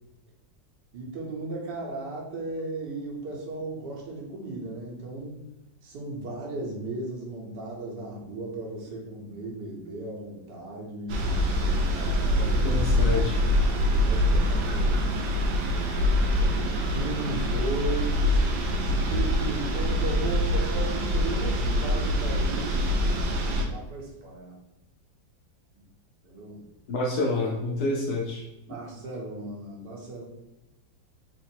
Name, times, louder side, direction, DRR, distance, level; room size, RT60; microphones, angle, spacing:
voice 1, 0.9-5.5 5.8-11.4 11.9-12.7 13.1-15.0 16.0-22.8 23.7-24.5 26.2-26.6 28.7-30.2, right 2 dB, 70° right, -3 dB, 1.5 m, -36 dB
sound 1, 11.1-23.7, left 1 dB, 85° right, 1.4 m, -24 dB
voice 2, 12.6-13.4 26.9-28.4, left 2 dB, 70° left, -1 dB, 1.0 m, -28 dB
3.9 x 2.1 x 4.3 m, 0.91 s
omnidirectional pair, 2.0 m